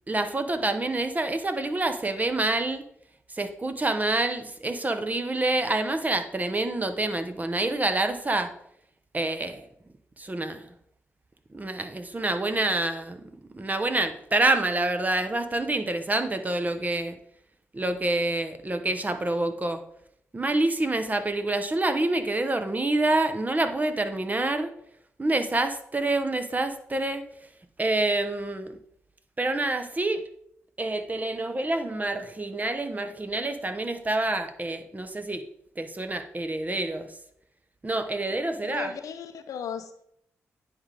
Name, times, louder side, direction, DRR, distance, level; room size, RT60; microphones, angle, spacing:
voice 1, 0.1-2.8 3.3-8.5 9.1-9.7 10.2-10.7 11.5-17.2 17.7-19.8 20.3-24.7 25.2-27.2 27.8-28.7 29.4-30.2 30.8-35.4 35.8-37.1 37.8-38.9, right 2 dB, 30° right, 9 dB, 0.9 m, -27 dB
voice 2, 38.6-40.1, left 7 dB, 75° left, 9 dB, 0.6 m, -36 dB
9.7 x 3.8 x 3.4 m, 0.71 s
supercardioid pair, 45°, 6 cm